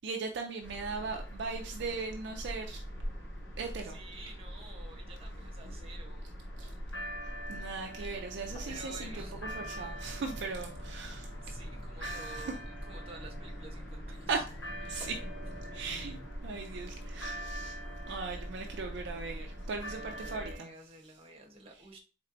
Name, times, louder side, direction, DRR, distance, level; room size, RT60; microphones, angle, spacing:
voice 1, 0.0-2.8 3.6-4.0 6.6-6.7 7.5-11.3 12.0-12.5 14.3-14.5 14.8-15.2 15.7-17.8 18.1-20.7, right 4 dB, 60° right, 2 dB, 0.5 m, -38 dB
sound 1, 0.6-20.6, equal, 65° left, 1.0 m, -42 dB
voice 2, 3.8-6.3 8.7-9.5 9.7-9.8 11.4-14.4 18.1-18.2 19.9-22.0, right 2 dB, 30° right, 1 dB, 1.0 m, -51 dB
sound 2, 6.4-16.3, left 2 dB, 25° left, 0.4 m, -53 dB
4.3 x 3.4 x 2.6 m, 0.37 s
head